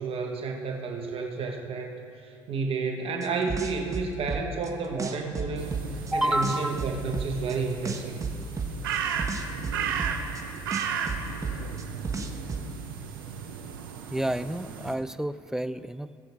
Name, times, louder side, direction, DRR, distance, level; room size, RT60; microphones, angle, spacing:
voice 1, 0.0-1.9 2.5-5.7 6.1-8.2, right 4 dB, 55° right, 2 dB, 1.4 m, -31 dB
sound 1, 3.2-4.7 5.0-6.1 6.4-7.6 7.9-10.4 10.7-12.6, right 5 dB, 30° right, 1.2 m, -32 dB
sound 2, 5.6-14.9, right 7 dB, 90° right, 0.8 m, -35 dB
voice 2, 6.1-7.0 14.1-16.2, right 1 dB, 5° right, 13 dB, 0.4 m, -29 dB
18.0 x 7.7 x 3.6 m, 2.8 s
hypercardioid pair, 65°, 12 cm